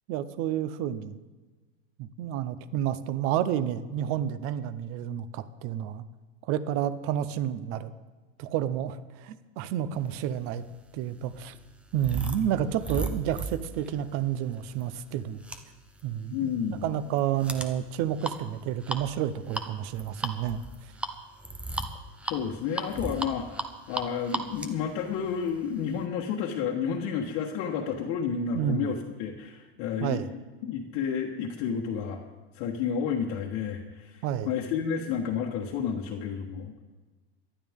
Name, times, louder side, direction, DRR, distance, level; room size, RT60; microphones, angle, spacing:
voice 1, 0.1-1.2 2.0-6.0 6.5-7.9 8.4-10.6 10.9-11.5 11.9-15.4 16.0-20.6 28.5-28.9 30.0-30.3 34.2-34.6, right 10 dB, 40° right, 14 dB, 0.8 m, -30 dB
sound 1, 10.4-26.0, right 2 dB, 5° right, 0.5 m, -37 dB
voice 2, 16.3-17.0 22.2-23.6 23.9-32.2 32.5-36.7, left 7 dB, 45° left, -2 dB, 1.3 m, -31 dB
19.0 x 12.0 x 3.6 m, 1.3 s
supercardioid pair, 160°, 33 cm